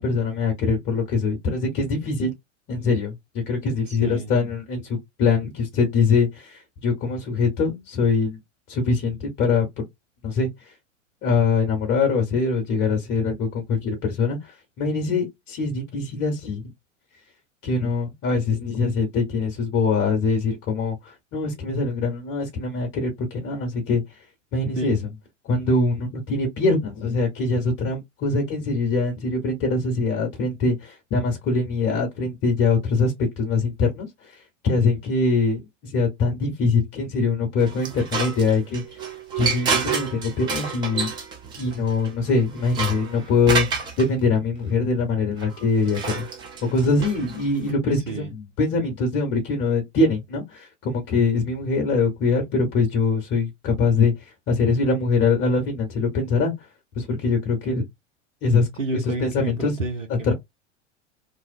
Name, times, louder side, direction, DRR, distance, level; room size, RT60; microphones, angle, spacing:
voice 1, 0.0-2.3 2.7-3.1 3.5-8.4 8.7-9.8 10.2-10.5 11.2-16.7 17.6-24.0 24.5-25.0 25.4-38.8 39.4-41.1 41.6-46.3 46.7-56.5 56.9-57.8 58.4-59.7 60.1-60.3, left 4 dB, 35° left, 0.8 m, -23 dB
voice 2, 3.9-4.3 24.7-25.0 47.9-48.3 58.8-60.3, right 3 dB, 90° right, 0.7 m, -30 dB
sound 1, 37.6-44.0 45.4-47.7, right 5 dB, 15° right, 0.3 m, -29 dB
2.6 x 2.0 x 2.4 m
figure-of-eight pair, 90°, 37 cm